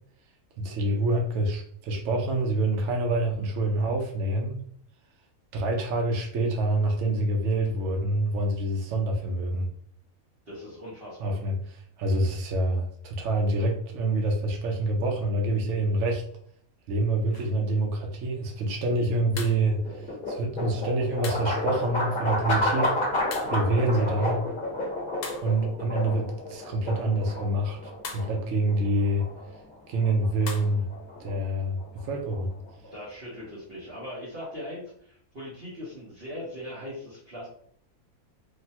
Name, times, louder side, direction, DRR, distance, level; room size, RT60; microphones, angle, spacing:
voice 1, 0.6-4.6 5.5-9.7 11.2-11.6 12.0-16.2 16.9-22.9 23.5-24.5 25.4-29.3 29.9-30.9 31.2-32.5, right 2 dB, 65° right, 1 dB, 0.9 m, -26 dB
voice 2, 10.5-11.4 32.9-37.5, left 1 dB, 45° right, -8 dB, 1.2 m, -40 dB
sound 1, 17.3-17.6 19.4-19.7 21.2-21.6 23.3-23.7 25.2-25.7 28.0-28.4 30.5-30.8, left 4 dB, 70° left, 0.9 m, -39 dB
sound 2, 19.0-33.1, left 1 dB, 40° left, 1.1 m, -31 dB
3.1 x 2.1 x 2.8 m, 0.63 s
omnidirectional pair, 1.5 m